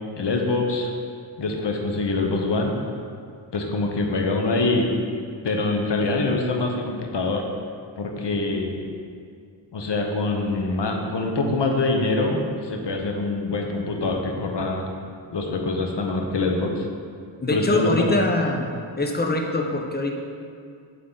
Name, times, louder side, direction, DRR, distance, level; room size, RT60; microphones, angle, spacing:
voice 1, 0.2-0.9 1.4-2.7 3.5-4.9 5.4-7.4 8.0-8.7 9.7-14.9 15.3-16.9 17.5-18.2, left 2 dB, 65° left, 2 dB, 0.8 m, -24 dB
voice 2, 17.4-18.7 19.0-20.1, left 2 dB, 20° left, 1 dB, 0.7 m, -23 dB
7.9 x 3.7 x 3.8 m, 2.3 s
wide cardioid pair, 75°, 45 cm